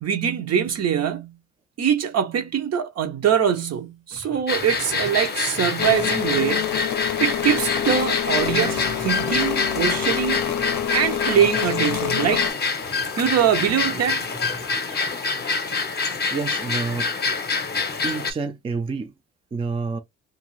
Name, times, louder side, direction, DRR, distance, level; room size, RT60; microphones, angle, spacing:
voice 1, 0.0-1.3 1.8-6.7 7.2-10.4 10.9-12.6 13.2-14.2, right 8 dB, 55° right, 0.8 m, -23 dB
sound 1, 3.6-3.7 4.1-6.6 7.0-9.5 9.9-12.4 12.8-15.1, right 3 dB, 85° right, 1.4 m, -42 dB
sound 2, 4.5-18.3, left 4 dB, 35° left, 0.8 m, -26 dB
sound 3, 5.8-12.5, left 11 dB, 70° left, 0.5 m, -27 dB
voice 2, 16.3-17.1 18.0-19.1 19.5-20.0, right 4 dB, 20° right, 0.4 m, -28 dB
2.6 x 2.3 x 3.1 m
cardioid pair, 90°, 30 cm